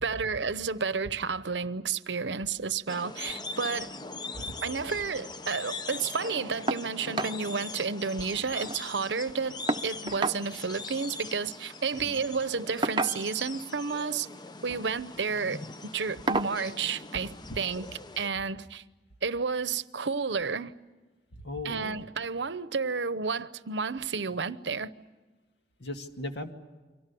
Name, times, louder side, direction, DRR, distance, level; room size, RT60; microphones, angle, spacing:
voice 1, 0.0-3.9 4.6-14.3 14.6-17.9 18.2-18.8 19.2-20.7 21.6-24.9, right 5 dB, 85° right, 0.9 m, -31 dB
sound 1, 2.9-18.3, left 3 dB, 25° left, 0.7 m, -41 dB
sound 2, 6.7-6.9 7.2-7.4 7.8-7.9 8.1-8.8 9.7-10.4 11.7-11.9 12.8-13.5 14.5-14.8 15.3-15.5 16.3-16.6 17.9-18.0 18.5-18.6, right 2 dB, 25° right, 0.8 m, -31 dB
voice 2, 21.3-22.1 25.8-26.5, left 1 dB, 70° left, 2.1 m, -38 dB
30.0 x 24.0 x 7.0 m
head